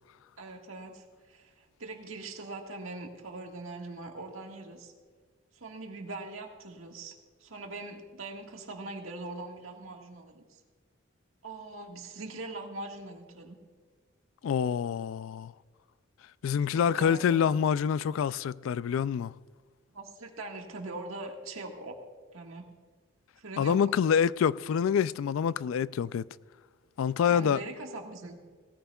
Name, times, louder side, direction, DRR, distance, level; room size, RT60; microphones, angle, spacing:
voice 1, 0.4-4.9 5.5-7.1 7.4-10.4 11.4-13.6 16.7-17.6 19.9-21.9 22.3-22.7 23.4-23.8 27.3-28.4, right 2 dB, 80° right, 1.7 m, -42 dB
voice 2, 14.4-15.5 16.4-19.3 23.6-26.2 27.0-27.6, left 7 dB, 75° left, 0.3 m, -26 dB
19.0 x 14.0 x 2.3 m
head